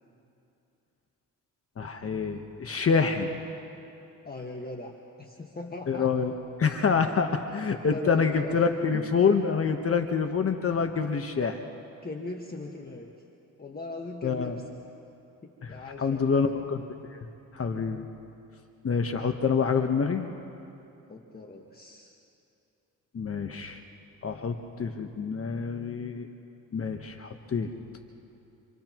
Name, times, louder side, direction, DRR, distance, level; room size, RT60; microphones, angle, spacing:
voice 1, 1.8-3.3 5.9-6.3 6.6-11.6 14.2-14.6 15.6-16.8 17.1-17.3 17.5-18.0 18.8-20.3 23.1-23.8 24.2-26.3 26.7-27.7, left 5 dB, 45° left, 5 dB, 1.2 m, -27 dB
voice 2, 4.2-6.1 7.9-8.5 8.9-9.1 10.7-10.8 12.0-13.1 13.6-14.7 15.4-16.5 21.1-22.1, left 2 dB, 30° left, 1 dB, 1.6 m, -40 dB
30.0 x 28.5 x 3.1 m, 2.8 s
cardioid pair, 80°, 33 cm